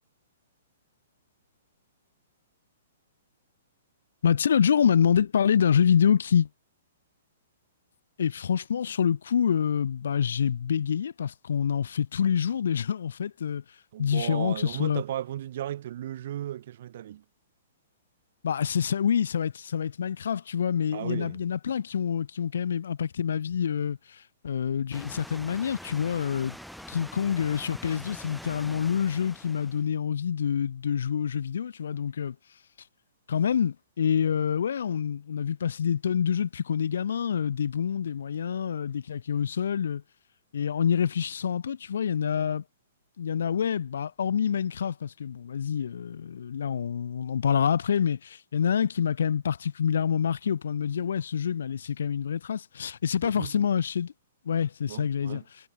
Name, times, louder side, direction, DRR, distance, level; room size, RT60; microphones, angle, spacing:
voice 1, 4.2-6.5 8.2-13.6 14.0-15.0 18.4-26.6 26.9-32.4 33.3-40.0 40.5-42.6 43.2-54.1 54.5-55.4, left 8 dB, 80° left, 2.0 m, -26 dB
voice 2, 13.9-17.2 20.9-21.4 53.2-53.5 54.9-55.4, right 12 dB, 50° right, 7.7 m, -35 dB
sound 1, 24.9-29.9, equal, ahead, 2.0 m, -45 dB
hypercardioid pair, 170°, 0 cm